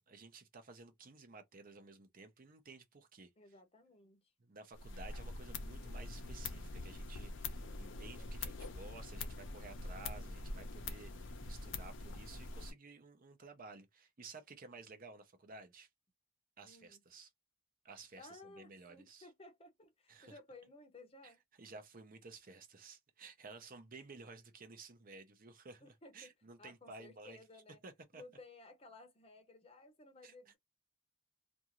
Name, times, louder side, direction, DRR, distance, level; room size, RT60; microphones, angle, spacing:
voice 1, 0.0-3.3 4.4-15.9 16.6-17.3 17.8-19.3 20.1-20.4 21.2-21.3 21.6-27.4 27.8-28.2 30.2-30.3, right 3 dB, 45° right, 0.6 m, -54 dB
voice 2, 3.4-4.3 16.6-17.0 18.2-21.4 25.8-26.3 26.6-27.8 28.1-30.6, left 2 dB, 30° left, 0.7 m, -57 dB
sound 1, 4.7-12.7, left 3 dB, 60° left, 0.6 m, -44 dB
2.5 x 2.4 x 2.9 m
head